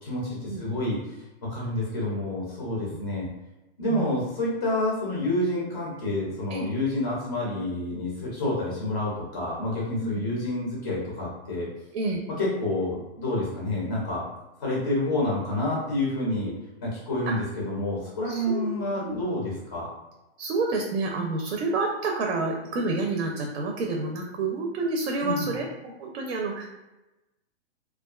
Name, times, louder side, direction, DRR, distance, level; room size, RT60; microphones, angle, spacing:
voice 1, 0.0-3.3 3.8-11.7 12.4-14.3 14.6-16.5 16.8-19.9 25.2-25.5, left 1 dB, 20° left, -5 dB, 0.4 m, -28 dB
voice 2, 3.9-4.2 6.5-6.7 10.0-10.2 11.9-12.2 17.3-17.4 18.3-18.7 19.0-19.2 20.4-26.7, right 3 dB, 80° right, 1 dB, 0.5 m, -29 dB
2.4 x 2.2 x 2.2 m, 1.0 s
hypercardioid pair, 160°, 34 cm